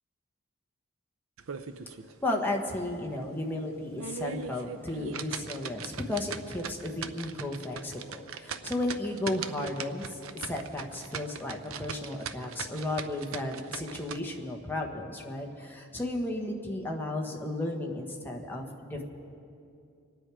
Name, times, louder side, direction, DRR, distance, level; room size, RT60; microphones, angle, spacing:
sound 1, 1.4-2.1 2.5-2.6 3.1-3.2 3.8-14.2, right 6 dB, 80° right, 0.6 m, -40 dB
voice 1, 2.2-19.0, left 1 dB, 10° left, 0 dB, 1.3 m, -34 dB
25.5 x 9.9 x 4.9 m, 2.6 s
head